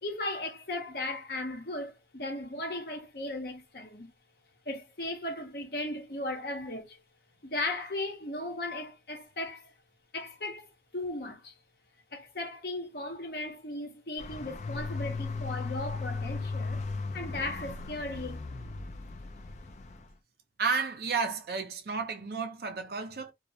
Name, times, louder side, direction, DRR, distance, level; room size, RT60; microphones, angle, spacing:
voice 1, 0.0-4.1 4.7-7.0 7.4-9.7 10.1-10.7 10.9-11.6 12.1-16.8 17.1-18.4, left 2 dB, 60° left, 0.9 m, -36 dB
sound 1, 14.2-20.1, left 3 dB, 40° left, 0.3 m, -37 dB
voice 2, 20.6-23.3, right 5 dB, 60° right, 0.5 m, -32 dB
2.2 x 2.0 x 2.7 m
head